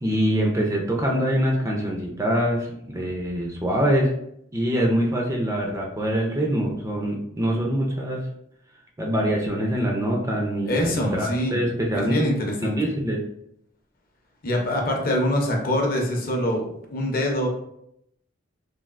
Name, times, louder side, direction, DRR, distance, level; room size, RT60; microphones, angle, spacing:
voice 1, 0.0-4.1 4.5-8.2 9.0-12.3 12.8-13.2, equal, 15° right, -1 dB, 0.3 m, -24 dB
voice 2, 10.7-11.6 11.9-12.8 14.4-17.5, left 1 dB, 45° left, 1 dB, 0.6 m, -24 dB
3.3 x 2.3 x 2.4 m, 0.75 s
head